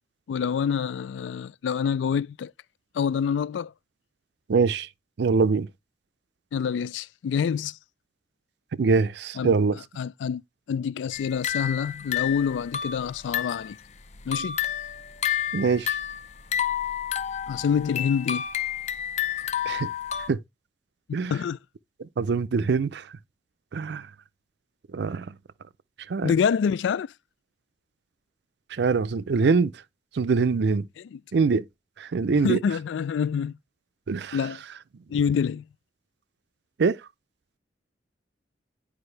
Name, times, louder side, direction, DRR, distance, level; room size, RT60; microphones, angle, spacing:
voice 1, 0.3-2.5 2.9-3.7 6.5-7.8 9.4-9.6 10.0-10.4 10.7-13.8 14.3-14.6 17.5-18.4 21.3-21.6 26.2-27.1 31.0-31.2 32.4-33.5 34.3-34.6 35.1-35.6, left 7 dB, 85° left, 0.3 m, -26 dB
voice 2, 4.5-4.9 5.2-5.7 8.8-9.8 15.5-16.0 19.7-19.9 20.3-20.4 21.1-21.3 22.0-23.1 23.7-24.1 24.9-25.3 26.1-26.3 28.7-29.7 30.1-30.9 31.3-31.6 32.0-32.6 34.1-34.4 36.8-37.0, right 4 dB, 65° right, 0.4 m, -23 dB
sound 1, 11.1-13.7 14.1-20.3, left 10 dB, 40° left, 0.6 m, -30 dB
9.7 x 5.1 x 3.2 m
head